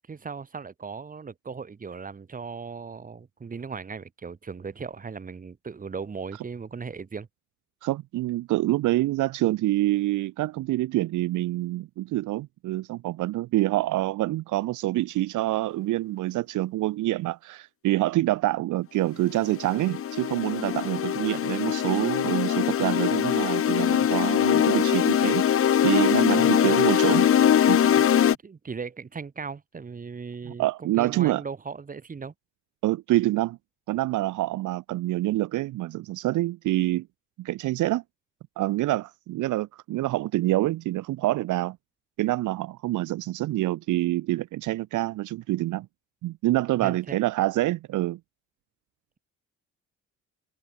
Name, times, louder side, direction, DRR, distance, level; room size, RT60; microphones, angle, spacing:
voice 1, 0.0-7.3 26.4-26.8 28.1-32.3 46.8-47.2, right 5 dB, 25° right, 4.6 m, -38 dB
voice 2, 7.8-25.4 25.8-27.3 27.7-27.9 30.6-31.4 32.8-33.6 33.9-37.1 37.4-38.0 38.6-41.8 42.2-45.9 46.2-48.2, right 16 dB, 80° right, 1.0 m, -26 dB
sound 1, 19.2-28.4, left 9 dB, 45° left, 2.0 m, -22 dB
cardioid pair, 145°, 30 cm